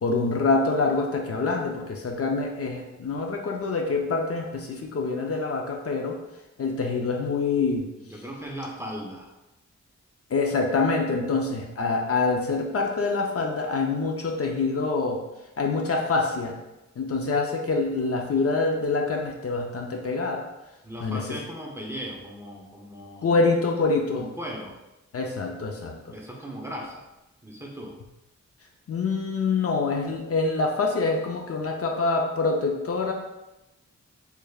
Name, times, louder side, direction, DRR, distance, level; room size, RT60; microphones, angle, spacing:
voice 1, 0.0-6.2 6.6-7.9 10.3-15.2 15.6-16.5 17.0-20.4 21.0-21.2 23.2-24.3 25.1-26.0 28.9-33.1, left 3 dB, 55° left, 1 dB, 0.4 m, -25 dB
voice 2, 8.1-9.3 20.8-23.5 24.1-24.8 26.1-27.1 27.4-27.9, equal, 10° right, -2 dB, 0.5 m, -37 dB
3.3 x 3.3 x 2.3 m, 0.99 s
wide cardioid pair, 135°, 29 cm